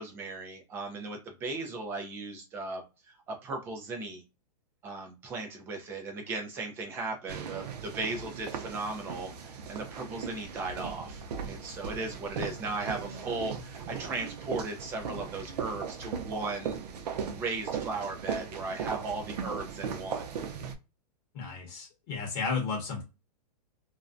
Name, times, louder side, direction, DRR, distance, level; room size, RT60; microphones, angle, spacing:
voice 1, 0.0-4.2 4.8-16.8 17.4-20.2, right 3 dB, 10° right, 3 dB, 0.3 m, -37 dB
sound 1, 7.3-20.7, right 6 dB, 80° right, 0.6 m, -38 dB
voice 2, 21.3-23.0, left 4 dB, 40° left, 1 dB, 0.8 m, -33 dB
2.4 x 2.1 x 2.5 m, 0.28 s
hypercardioid pair, 160°, 20 cm